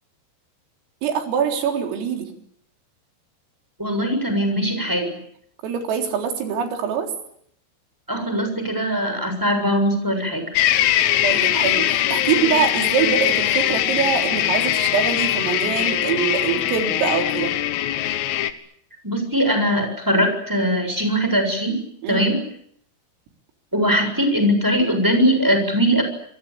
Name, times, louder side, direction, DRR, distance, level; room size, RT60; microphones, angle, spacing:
voice 1, 1.0-2.3 5.6-7.1 11.2-17.5 22.0-22.3, right 7 dB, 85° right, 4 dB, 6.4 m, -24 dB
voice 2, 3.8-5.1 8.1-10.5 19.0-21.8 22.1-22.4 23.7-26.0, equal, 5° right, 6 dB, 6.7 m, -21 dB
sound 1, 10.6-18.5, left 12 dB, 85° left, 4.0 m, -21 dB
28.5 x 22.5 x 8.8 m, 0.69 s
omnidirectional pair, 5.8 m